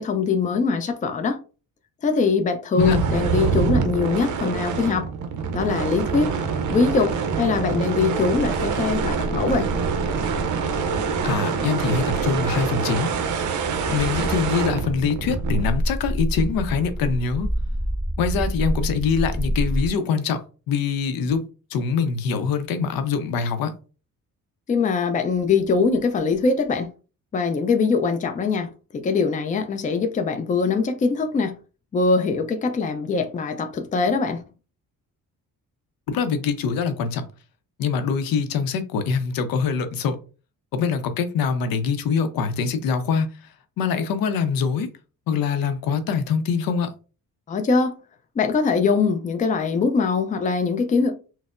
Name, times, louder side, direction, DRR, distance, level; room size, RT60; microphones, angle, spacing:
voice 1, 0.0-1.4 2.0-5.1 5.5-6.3 6.7-9.7 24.7-26.9 27.3-31.6 31.9-34.4 47.5-48.0 48.4-51.1, left 4 dB, 25° left, 0.4 m, -22 dB
sound 1, 2.8-15.7, right 5 dB, 60° right, 0.5 m, -25 dB
sound 2, 8.3-19.9, equal, 5° left, 1.7 m, -29 dB
voice 2, 11.2-13.1 13.9-17.5 18.2-21.4 21.7-23.7 36.1-37.3 37.8-40.2 40.7-43.3 43.8-44.9 45.3-46.9, left 6 dB, 85° left, 0.6 m, -24 dB
4.1 x 2.0 x 2.4 m
cardioid pair, 120°, 34 cm